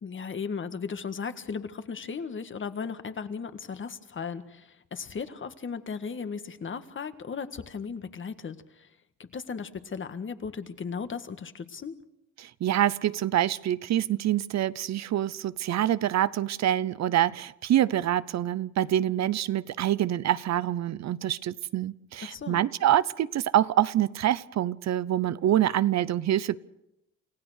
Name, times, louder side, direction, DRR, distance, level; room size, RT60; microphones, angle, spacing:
voice 1, 0.0-8.9 9.2-12.0 22.2-22.6, left 5 dB, 40° left, 1.7 m, -36 dB
voice 2, 12.4-26.6, right 12 dB, 65° right, 0.8 m, -26 dB
29.0 x 16.0 x 6.6 m
cardioid pair, 90°, 30 cm